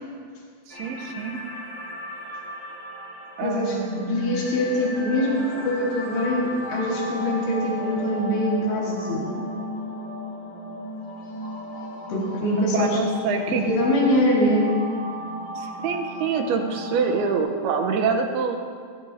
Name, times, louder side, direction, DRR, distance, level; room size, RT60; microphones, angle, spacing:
sound 1, 0.7-17.4, equal, 40° left, 3.0 m, -35 dB
voice 1, 0.7-1.5 3.4-4.4 12.7-13.6 15.6-18.6, right 5 dB, 90° right, 3 dB, 2.9 m, -26 dB
voice 2, 3.4-9.3 12.1-13.0 13.5-14.7, left 1 dB, 80° left, -3 dB, 3.9 m, -23 dB
20.5 x 20.0 x 2.8 m, 2.1 s
omnidirectional pair, 4.4 m